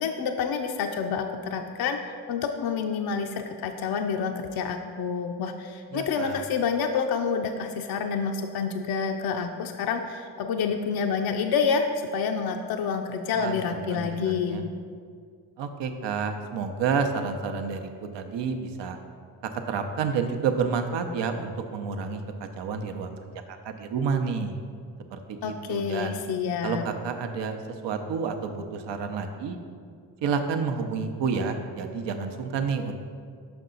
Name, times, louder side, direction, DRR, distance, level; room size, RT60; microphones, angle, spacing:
voice 1, 0.0-14.7 25.4-26.8, left 6 dB, 55° left, 4 dB, 0.5 m, -28 dB
voice 2, 5.9-6.4 13.3-14.6 15.6-19.0 19.7-23.1 23.6-24.6 25.1-26.2 26.6-27.6 27.8-29.6 30.2-32.9, right 5 dB, 65° right, 6 dB, 0.7 m, -30 dB
5.7 x 5.3 x 3.8 m, 2.2 s
supercardioid pair, 50°, 45 cm